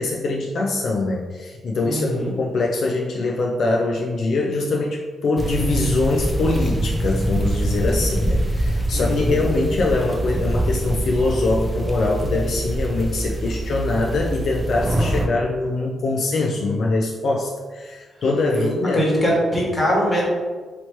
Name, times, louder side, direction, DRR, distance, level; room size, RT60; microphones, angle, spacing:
voice 1, 0.0-19.0, left 2 dB, 60° left, -1 dB, 0.4 m, -23 dB
voice 2, 1.8-2.3 8.9-9.4 16.6-16.8 18.5-18.7 18.9-20.3, equal, 15° left, -4 dB, 1.4 m, -22 dB
sound 1, 5.4-15.3, right 1 dB, 10° right, 0.5 m, -24 dB
3.1 x 2.9 x 4.3 m, 1.4 s
cardioid pair, 115°, 0 cm